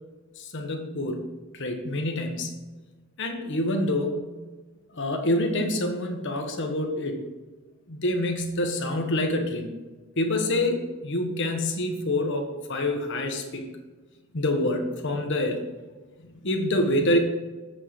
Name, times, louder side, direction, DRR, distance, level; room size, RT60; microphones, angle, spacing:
voice 1, 0.5-1.2 1.6-2.5 3.2-4.3 5.0-7.2 7.9-9.7 10.2-13.7 14.3-15.6 16.4-17.2, left 1 dB, 55° left, 3 dB, 1.3 m, -26 dB
7.6 x 6.2 x 4.9 m, 1.3 s
head